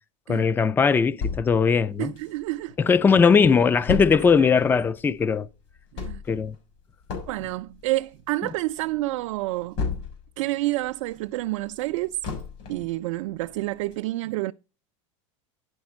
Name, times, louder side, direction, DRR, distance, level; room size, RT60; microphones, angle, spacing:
voice 1, 0.3-2.1 2.8-5.5 6.3-6.6, left 5 dB, 10° left, 0.4 m, -19 dB
sound 1, 1.2-2.7 3.1-3.2 3.4-10.4 10.8-13.0 13.4-13.5 13.9-14.0, left 5 dB, 60° left, 3.9 m, -34 dB
voice 2, 2.0-2.7 5.9-6.2 7.3-9.8 10.4-12.2 12.7-14.5, right 18 dB, 70° right, 0.4 m, -28 dB
10.5 x 4.2 x 6.1 m
supercardioid pair, 125°, 17 cm